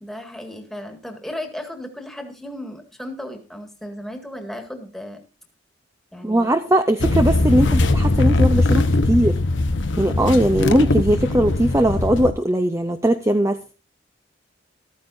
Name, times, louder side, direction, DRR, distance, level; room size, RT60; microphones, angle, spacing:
voice 1, 0.0-5.2 6.1-6.5, left 1 dB, ahead, 3 dB, 1.8 m, -35 dB
voice 2, 6.2-9.4 10.0-13.7, right 1 dB, 15° right, 8 dB, 0.5 m, -19 dB
sound 1, 7.0-12.3, left 2 dB, 70° left, 1.0 m, -20 dB
14.0 x 13.5 x 2.6 m, 0.32 s
head